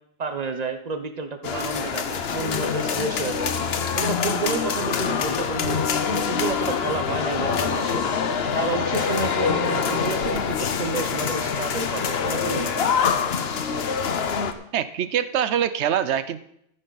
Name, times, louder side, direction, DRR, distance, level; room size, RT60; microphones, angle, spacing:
voice 1, 0.2-3.5 3.9-8.1 8.5-12.8, right 4 dB, 40° right, 8 dB, 1.0 m, -30 dB
sound 1, 1.4-14.5, left 6 dB, 65° left, 1.0 m, -25 dB
voice 2, 14.7-16.4, right 9 dB, 80° right, 14 dB, 1.0 m, -24 dB
14.5 x 9.2 x 4.1 m, 0.74 s
omnidirectional pair, 1.1 m